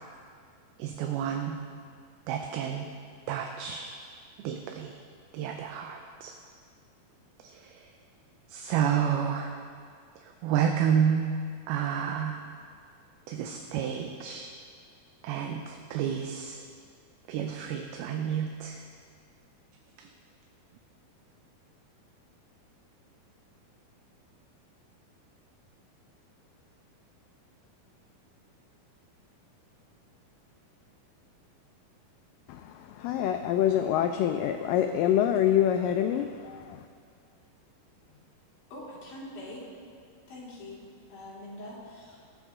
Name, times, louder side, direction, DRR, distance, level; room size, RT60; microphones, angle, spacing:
voice 1, 0.8-1.6 2.3-2.9 3.3-3.9 4.4-5.0 5.3-6.3 7.4-7.9 8.5-9.6 10.2-11.3 11.7-12.4 13.3-14.5 15.2-16.6 17.3-18.8 20.0-20.1, right 8 dB, 80° right, 4 dB, 2.5 m, -30 dB
voice 2, 32.5-36.8, left 10 dB, 90° left, 6 dB, 1.9 m, -26 dB
voice 3, 38.7-39.6 40.3-42.2, left 1 dB, 55° left, -7 dB, 4.2 m, -44 dB
21.5 x 7.3 x 3.6 m, 2.1 s
omnidirectional pair, 4.5 m